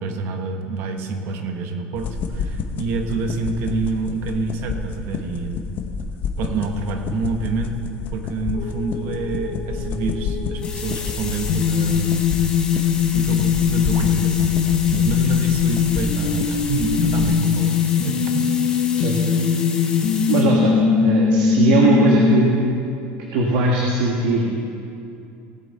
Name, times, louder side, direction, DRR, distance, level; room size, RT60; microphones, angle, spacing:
voice 1, 0.0-5.7 6.4-7.8 8.1-12.3 12.6-12.8 13.1-17.8 18.0-18.3, right 3 dB, 50° right, 5 dB, 1.2 m, -27 dB
sound 1, 2.0-17.3, left 5 dB, 40° left, 0.9 m, -30 dB
sound 2, 8.6-22.4, left 6 dB, 65° left, 1.1 m, -21 dB
sound 3, 10.6-20.4, left 5 dB, 20° left, 1.2 m, -33 dB
voice 2, 20.3-20.8 21.0-22.5 23.3-24.7, right 3 dB, 70° right, -2 dB, 1.5 m, -19 dB
18.0 x 7.9 x 4.3 m, 2.6 s
cardioid pair, 160°, 5 cm